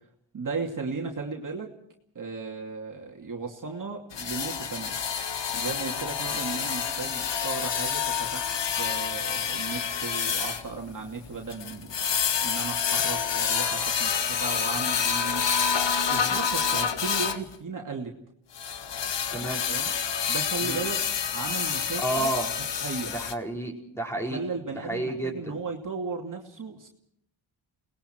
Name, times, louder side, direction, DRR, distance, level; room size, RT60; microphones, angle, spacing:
voice 1, 0.3-1.8 2.1-5.0 5.5-8.5 8.8-12.0 12.4-15.4 16.1-18.1 19.4-19.9 20.3-21.0 21.3-22.3 22.8-23.1 24.3-26.9, right 4 dB, 40° right, 0 dB, 2.6 m, -35 dB
sound 1, 4.1-17.4 18.5-23.3, left 7 dB, 60° left, 1.5 m, -28 dB
voice 2, 19.3-19.6 20.6-20.8 22.0-22.5 23.1-24.4 24.7-25.6, right 1 dB, 5° left, 0 dB, 4.7 m, -31 dB
29.5 x 20.0 x 4.6 m, 0.73 s
cardioid pair, 110°, 47 cm